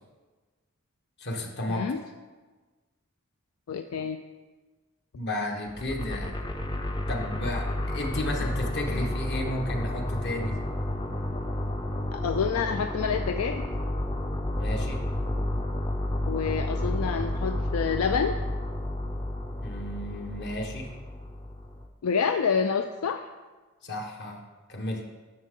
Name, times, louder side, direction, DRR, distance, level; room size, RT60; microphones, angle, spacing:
voice 1, 1.2-1.9 5.1-6.4 7.1-10.6 14.6-15.0 19.6-20.9 23.8-24.4 24.7-25.0, left 1 dB, 55° left, 1 dB, 1.3 m, -33 dB
voice 2, 1.7-2.0 3.7-4.2 8.9-9.0 12.1-13.6 16.3-18.3 22.0-23.3, left 6 dB, 80° left, 7 dB, 0.4 m, -28 dB
sound 1, 5.7-21.9, left 1 dB, 20° left, 0.5 m, -31 dB
10.0 x 6.5 x 3.7 m, 1.3 s
head